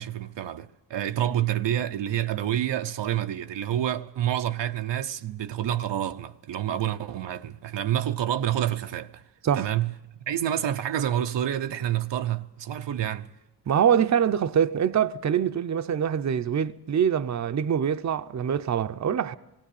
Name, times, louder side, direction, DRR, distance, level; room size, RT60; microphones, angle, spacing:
voice 1, 0.0-9.2 9.5-9.9 10.3-13.3, right 11 dB, 85° right, 0.8 m, -28 dB
voice 2, 13.7-19.3, right 8 dB, 40° right, 0.7 m, -24 dB
18.0 x 17.5 x 8.5 m
cardioid pair, 95°, 42 cm